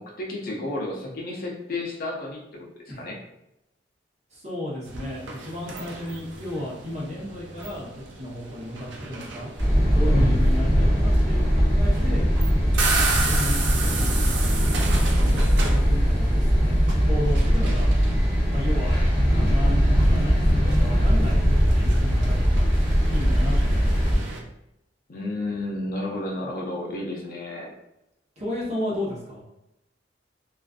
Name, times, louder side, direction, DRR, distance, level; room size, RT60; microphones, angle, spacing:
voice 1, 0.0-2.7 3.0-3.2 25.1-27.7, left 2 dB, 55° left, -1 dB, 0.5 m, -32 dB
voice 2, 4.3-9.5 9.9-12.2 13.0-14.5 15.2-17.9 18.5-19.0 19.3-21.4 21.7-22.7 23.1-24.1 28.4-29.4, left 1 dB, 40° right, -6 dB, 0.9 m, -33 dB
sound 1, 4.9-24.4, right 4 dB, 90° right, 0.4 m, -34 dB
sound 2, 9.6-24.2, equal, 10° left, 1.2 m, -20 dB
2.4 x 2.4 x 2.4 m, 0.86 s
head